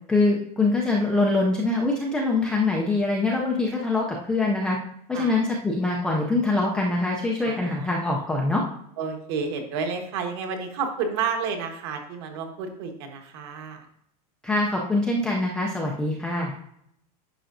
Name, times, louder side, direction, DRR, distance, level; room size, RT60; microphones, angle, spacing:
voice 1, 0.1-4.8 5.1-8.6 14.4-16.5, left 2 dB, 5° left, -3 dB, 0.3 m, -24 dB
voice 2, 7.4-7.9 9.0-13.8, right 5 dB, 40° right, 5 dB, 1.2 m, -31 dB
10.0 x 5.6 x 2.5 m, 0.73 s
supercardioid pair, 180°, 20 cm